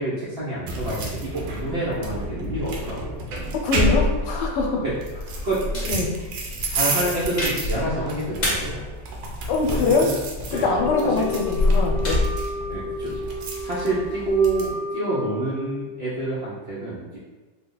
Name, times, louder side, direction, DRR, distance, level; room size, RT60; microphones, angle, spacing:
voice 1, 0.0-3.2 4.8-4.9 5.4-5.6 6.7-8.8 9.7-10.2 10.5-10.8 11.0-11.2 11.9-12.1 12.7-17.2, right 2 dB, 60° right, -8 dB, 0.7 m, -28 dB
sound 1, 0.7-14.7, equal, 80° right, 1.3 m, -28 dB
voice 2, 3.5-4.8 5.8-6.1 9.5-10.1 10.5-12.2, left 4 dB, 85° left, 1 dB, 1.3 m, -23 dB
sound 2, 5.7-13.3, equal, 30° left, 0.9 m, -35 dB
Wind instrument woodwind instrument, 10.5-16.1, left 2 dB, 70° left, 0.3 m, -32 dB
3.4 x 2.2 x 3.8 m, 1.3 s
omnidirectional pair, 1.9 m